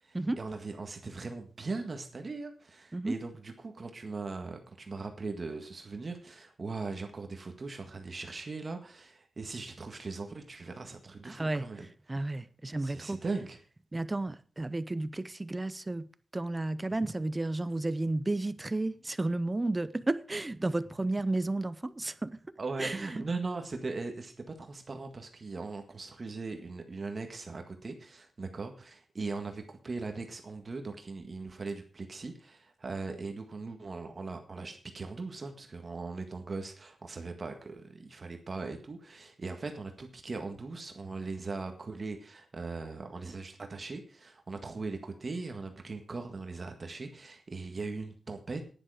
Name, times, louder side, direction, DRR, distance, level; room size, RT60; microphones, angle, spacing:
voice 1, 0.0-11.9 12.8-13.6 22.6-48.6, right 3 dB, 35° right, 1.7 m, -39 dB
voice 2, 11.2-11.6 12.1-13.2 13.9-16.1 16.3-22.3 22.8-23.3, right 2 dB, 20° right, 0.5 m, -32 dB
11.0 x 10.5 x 4.9 m
wide cardioid pair, 165°, 0 cm